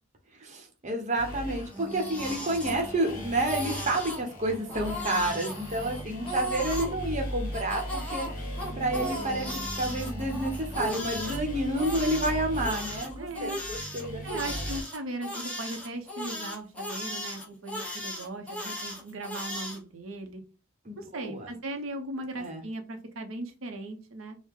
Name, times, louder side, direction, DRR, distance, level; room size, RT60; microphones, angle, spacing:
voice 1, 0.3-8.3 8.8-14.7 20.8-21.5 22.4-22.6, right 1 dB, 40° right, 0.9 m, -30 dB
sound 1, 1.1-14.8, equal, 45° left, 1.3 m, -38 dB
Crying sobbing, 1.6-3.1 3.4-4.2 4.7-6.9 7.5-11.4 11.8-19.8, equal, 5° left, 1.0 m, -36 dB
sound 2, 1.7-11.0, right 1 dB, 15° right, 0.6 m, -46 dB
voice 2, 13.2-13.6 14.2-20.4 21.0-24.4, right 2 dB, 85° right, 0.7 m, -38 dB
4.8 x 2.1 x 3.6 m
head